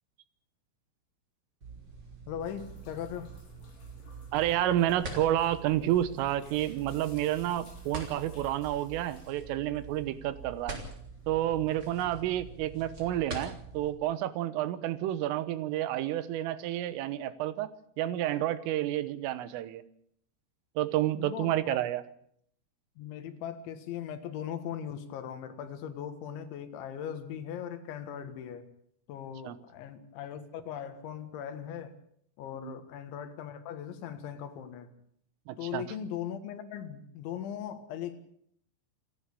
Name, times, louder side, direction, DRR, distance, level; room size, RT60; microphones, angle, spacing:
sound 1, 1.6-13.9, right 3 dB, 25° right, 3.1 m, -45 dB
voice 1, 2.3-3.3 21.2-21.8 23.0-28.7 29.1-32.0 32.4-34.9 35.6-38.3, left 9 dB, 70° left, 9 dB, 3.8 m, -39 dB
sound 2, 2.4-10.2 10.5-12.2, left 3 dB, 50° left, 8.0 m, -60 dB
voice 2, 4.3-10.8 11.3-17.7 18.0-19.8 20.8-22.0 29.4-29.6 32.6-32.8 35.5-35.8, right 13 dB, 80° right, 14 dB, 3.6 m, -30 dB
28.5 x 11.0 x 8.4 m, 0.67 s
omnidirectional pair, 5.9 m